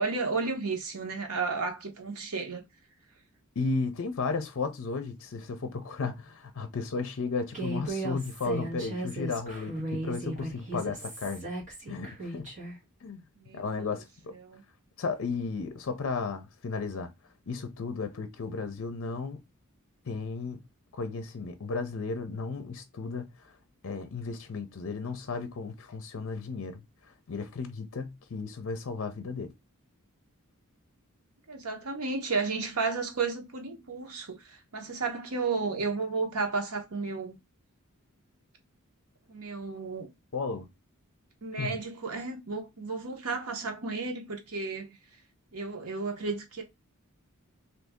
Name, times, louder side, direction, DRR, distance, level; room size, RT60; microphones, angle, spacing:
voice 1, 0.0-2.6 13.4-13.9 14.3-14.6 31.5-37.4 39.3-40.1 41.4-45.0 45.5-46.6, right 4 dB, 80° right, 1.0 m, -33 dB
voice 2, 3.6-11.5 11.9-12.5 13.0-13.2 13.5-14.3 15.0-17.1 17.5-19.4 20.1-20.6 20.9-23.2 23.8-26.8 27.3-29.5 40.3-40.7 41.6-41.8, left 4 dB, 65° left, 0.5 m, -34 dB
Human voice, 7.5-12.7, right 2 dB, 35° right, 1.5 m, -36 dB
2.7 x 2.7 x 3.5 m
head